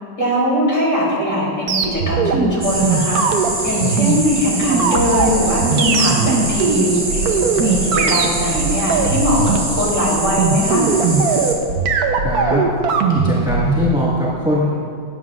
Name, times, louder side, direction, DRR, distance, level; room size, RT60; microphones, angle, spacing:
voice 1, 0.2-3.2 3.6-7.0 7.6-10.8, equal, 25° left, -6 dB, 3.3 m, -20 dB
sound 1, 1.7-13.9, right 5 dB, 60° right, 1.0 m, -19 dB
sound 2, 2.6-11.5, right 2 dB, 20° right, 1.0 m, -24 dB
voice 2, 12.2-12.6 13.1-14.7, left 1 dB, 5° right, -7 dB, 1.2 m, -20 dB
18.0 x 9.3 x 2.4 m, 2.2 s
omnidirectional pair, 2.2 m